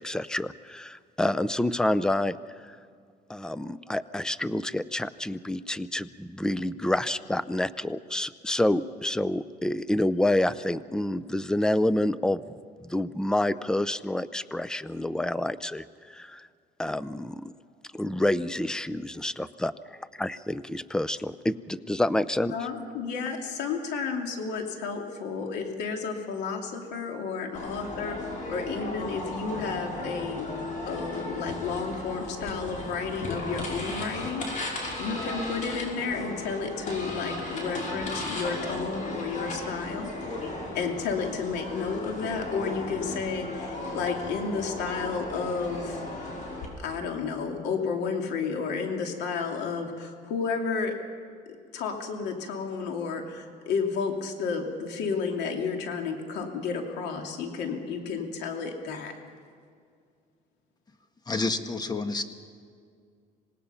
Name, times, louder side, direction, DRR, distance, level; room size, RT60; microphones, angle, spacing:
voice 1, 0.0-2.8 3.3-12.6 12.8-16.5 16.8-17.5 17.9-19.7 20.2-22.5, left 1 dB, 5° left, 15 dB, 0.6 m, -28 dB
voice 2, 22.5-28.2 28.5-30.5 30.9-40.1 40.7-46.0 46.8-50.9 51.7-59.1, left 5 dB, 85° left, 3 dB, 2.8 m, -32 dB
sound 1, 27.5-46.7, left 2 dB, 50° left, 5.6 m, -35 dB
voice 3, 61.3-62.2, left 3 dB, 25° left, 8 dB, 1.4 m, -29 dB
26.5 x 18.5 x 5.7 m, 2.2 s
cardioid pair, 110°, 17 cm